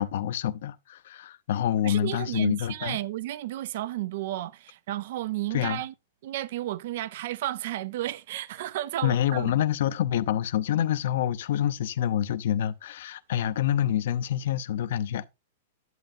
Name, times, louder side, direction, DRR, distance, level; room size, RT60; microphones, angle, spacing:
voice 1, 0.0-3.0 5.5-5.8 9.0-15.2, left 10 dB, 55° left, 0.7 m, -27 dB
voice 2, 1.8-5.9 6.2-9.5, right 14 dB, 45° right, 0.5 m, -32 dB
11.0 x 7.8 x 2.6 m
supercardioid pair, 175°, 0 cm